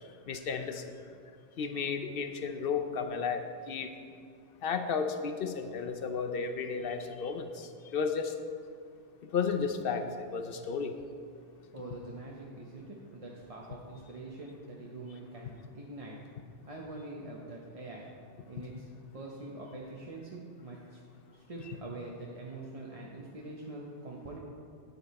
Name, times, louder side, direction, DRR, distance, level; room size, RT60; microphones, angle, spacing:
voice 1, 0.3-0.8 1.6-3.4 3.7-3.9 4.6-8.3 9.3-10.0 10.3-10.9, left 6 dB, 60° left, 7 dB, 0.8 m, -33 dB
voice 2, 11.7-16.2 16.7-18.1 18.5-21.0 21.3-24.4, right 2 dB, 35° right, -3 dB, 0.9 m, -44 dB
9.7 x 8.2 x 4.2 m, 2.3 s
omnidirectional pair, 1.2 m